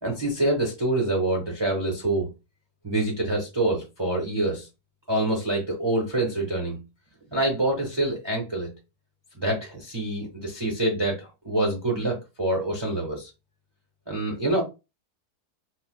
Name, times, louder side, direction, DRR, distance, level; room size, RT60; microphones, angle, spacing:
voice 1, 0.0-2.3 2.8-4.7 5.1-6.8 7.3-8.7 9.3-13.3 14.1-14.6, right 1 dB, 35° right, 0.4 m, -26 dB
3.9 x 2.0 x 2.3 m
omnidirectional pair, 1.7 m